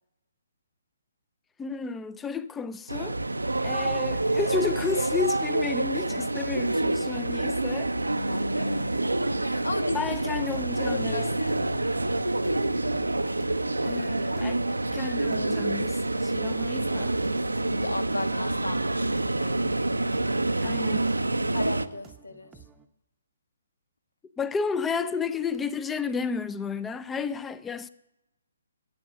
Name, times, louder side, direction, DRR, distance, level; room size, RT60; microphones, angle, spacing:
voice 1, 1.6-3.2 3.6-7.9 9.9-11.2 13.8-14.6 14.9-17.2 20.4-21.1 24.4-27.9, left 5 dB, 10° left, 0.5 m, -32 dB
sound 1, 2.9-21.9, right 2 dB, 90° right, 0.6 m, -27 dB
voice 2, 8.3-9.0 9.4-10.1 10.8-11.7 17.5-19.6 21.5-22.5, left 2 dB, 80° left, 1.4 m, -35 dB
sound 2, 21.6-22.9, right 5 dB, 15° right, 0.7 m, -53 dB
12.0 x 8.5 x 6.3 m
figure-of-eight pair, 135°, 0 cm